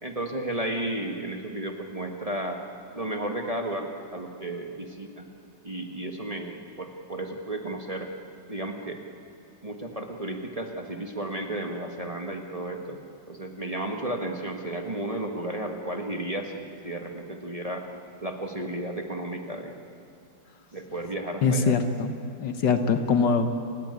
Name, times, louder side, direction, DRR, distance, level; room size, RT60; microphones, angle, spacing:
voice 1, 0.0-2.6 2.9-5.3 5.6-8.1 8.5-9.0 9.6-13.0 13.3-17.9 18.2-19.8 20.7-21.8, right 1 dB, 20° right, 3 dB, 1.5 m, -33 dB
voice 2, 21.4-22.1 22.4-23.6, left 4 dB, 70° left, 8 dB, 2.0 m, -23 dB
29.5 x 16.5 x 9.6 m, 2.5 s
omnidirectional pair, 2.0 m